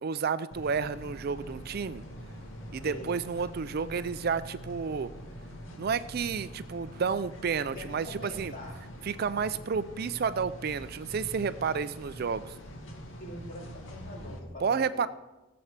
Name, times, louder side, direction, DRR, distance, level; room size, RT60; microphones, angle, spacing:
voice 1, 0.0-2.0 2.7-5.1 5.8-8.5 9.0-12.5 14.6-15.1, right 6 dB, 50° right, 14 dB, 0.4 m, -31 dB
sound 1, 0.5-14.4, equal, 80° left, 2.2 m, -44 dB
voice 2, 7.7-8.7 13.2-15.1, left 1 dB, 45° left, -2 dB, 3.4 m, -44 dB
15.5 x 7.9 x 6.5 m, 1.1 s
head